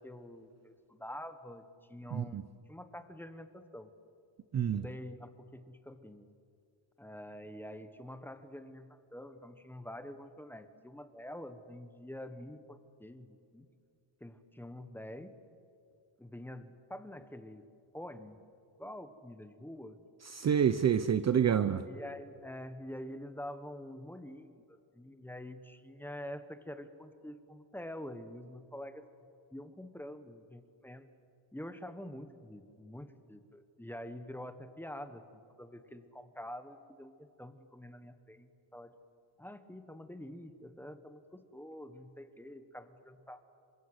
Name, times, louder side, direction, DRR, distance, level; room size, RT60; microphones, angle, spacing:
voice 1, 0.0-3.9 4.7-6.3 7.0-13.7 14.2-15.4 16.2-17.6 17.9-18.4 18.8-20.0 21.9-31.1 31.5-35.2 35.6-38.9 39.4-43.5, left 1 dB, 5° left, 9 dB, 1.3 m, -46 dB
voice 2, 2.1-2.4 4.5-4.8 20.3-21.8, right 8 dB, 35° right, 12 dB, 0.7 m, -28 dB
28.0 x 24.5 x 8.1 m, 2.4 s
cardioid pair, 155°, 50 cm